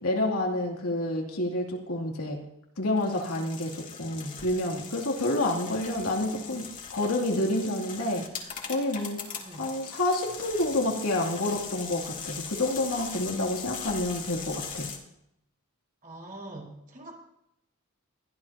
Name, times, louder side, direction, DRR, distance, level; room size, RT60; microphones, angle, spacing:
voice 1, 0.0-2.4 2.8-9.2 9.6-14.9, left 1 dB, 75° left, -1 dB, 2.9 m, -29 dB
sound 1, 3.0-15.0, left 6 dB, 35° left, 2.5 m, -40 dB
voice 2, 6.2-6.5 9.4-9.7 16.0-17.2, right 1 dB, 40° right, -2 dB, 4.9 m, -43 dB
21.5 x 14.5 x 2.9 m, 0.81 s
head